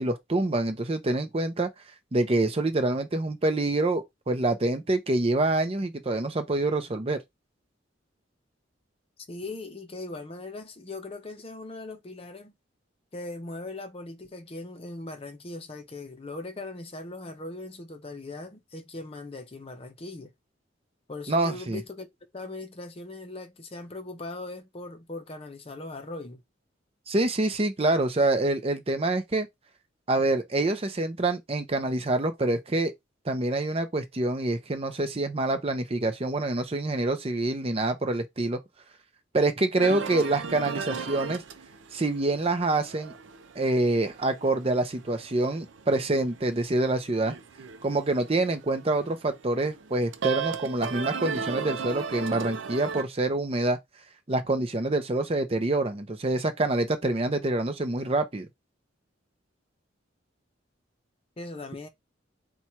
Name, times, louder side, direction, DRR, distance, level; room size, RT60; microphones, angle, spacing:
voice 1, 0.0-1.7 2.1-7.2 21.3-21.8 27.1-29.5 30.1-32.9 33.3-38.6 39.3-41.4 41.9-43.1 43.6-47.3 47.8-53.8 54.3-58.5, right 2 dB, 30° right, 0.6 m, -26 dB
voice 2, 9.3-12.5 13.1-20.3 21.1-26.4 61.4-61.9, left 2 dB, 30° left, 0.6 m, -39 dB
sound 1, 39.8-53.0, right 6 dB, 75° right, 0.5 m, -37 dB
4.3 x 2.3 x 4.3 m
head